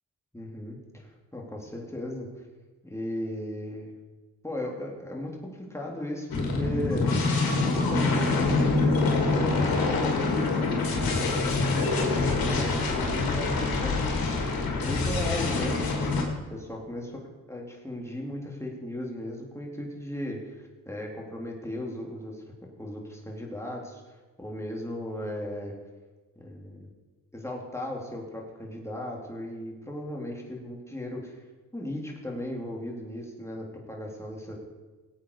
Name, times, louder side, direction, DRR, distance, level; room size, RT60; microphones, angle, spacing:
voice 1, 0.3-2.4 2.8-3.9 4.4-7.1 7.5-8.7 9.3-14.3 14.8-15.8 16.5-17.2 17.5-22.4 22.8-24.0 24.4-25.7 26.4-26.9 27.3-31.4 31.7-34.5, left 1 dB, 10° left, -1 dB, 3.8 m, -36 dB
sound 1, 6.3-16.2, left 3 dB, 75° left, 2.7 m, -25 dB
17.5 x 8.5 x 5.1 m, 1.2 s
cardioid pair, 50°, 35 cm